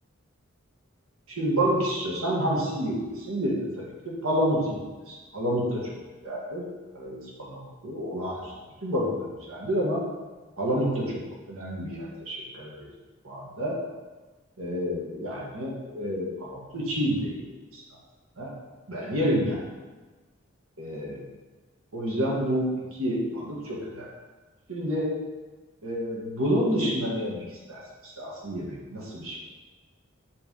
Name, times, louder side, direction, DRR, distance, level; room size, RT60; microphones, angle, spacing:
voice 1, 1.3-3.7 4.0-4.8 5.1-5.9 6.2-6.6 6.9-8.5 8.8-10.0 10.6-11.2 11.5-12.9 13.2-13.8 14.6-17.4 17.7-17.8 18.4-18.5 18.9-19.6 20.8-21.2 21.9-24.1 24.7-25.1 25.8-29.4, equal, 90° right, -4 dB, 1.7 m, -29 dB
6.0 x 3.5 x 5.2 m, 1.3 s
head